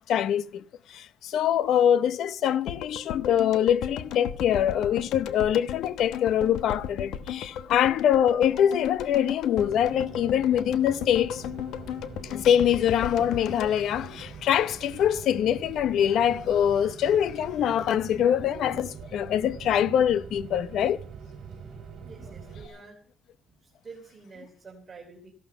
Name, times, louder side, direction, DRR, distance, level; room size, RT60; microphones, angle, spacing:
voice 1, 0.1-0.6 0.9-11.4 12.2-21.0, left 9 dB, 65° left, 0.7 m, -24 dB
sound 1, 2.7-14.9 15.1-15.2, left 9 dB, 85° left, 1.2 m, -36 dB
Rain, 9.5-22.7, right 6 dB, 50° right, 2.7 m, -43 dB
voice 2, 22.0-23.0 23.5-25.3, right 4 dB, 25° right, 3.4 m, -48 dB
15.5 x 12.0 x 5.6 m
cardioid pair, 140°, 0 cm